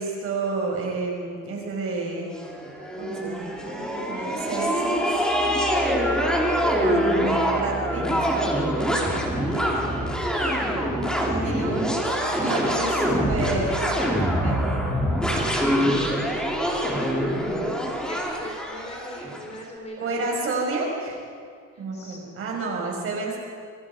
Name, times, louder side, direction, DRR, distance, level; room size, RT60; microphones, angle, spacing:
voice 1, 0.0-2.3 3.0-5.2 6.7-8.3 11.3-11.9 12.4-14.7 20.0-21.2 21.8-23.4, right 3 dB, 40° right, 0 dB, 5.6 m, -30 dB
sound 1, 2.4-19.5, equal, ahead, 2.9 m, -24 dB
voice 2, 9.2-10.1 11.4-11.7 17.2-17.6 18.1-20.4 21.7-22.2, left 1 dB, 20° left, 0 dB, 3.4 m, -41 dB
27.0 x 23.5 x 5.0 m, 2.2 s
cardioid pair, 180°, 33 cm